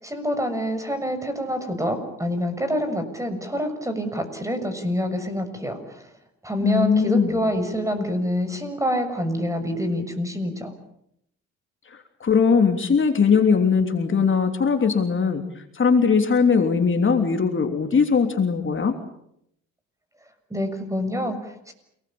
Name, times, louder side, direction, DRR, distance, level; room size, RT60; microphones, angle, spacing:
voice 1, 0.0-6.1 6.4-10.7 20.5-21.7, equal, 10° right, 8 dB, 6.8 m, -26 dB
voice 2, 6.6-7.4 11.9-15.4 15.7-18.9, left 5 dB, 40° left, 5 dB, 3.2 m, -20 dB
29.0 x 20.0 x 8.8 m, 0.76 s
cardioid pair, 90°, 30 cm